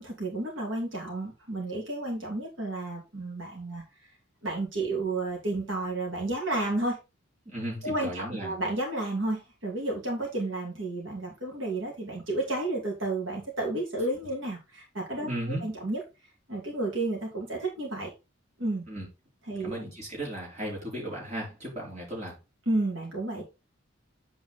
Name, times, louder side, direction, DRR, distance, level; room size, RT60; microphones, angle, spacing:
voice 1, 0.0-3.8 4.4-7.0 7.8-16.0 16.5-18.1 18.6-18.8 19.5-19.7 22.7-23.4, right 2 dB, 75° right, 2.9 m, -31 dB
voice 2, 7.5-8.6 15.2-15.6 18.9-19.1 19.6-22.4, right 1 dB, 35° right, 3.8 m, -35 dB
8.2 x 4.7 x 3.9 m
head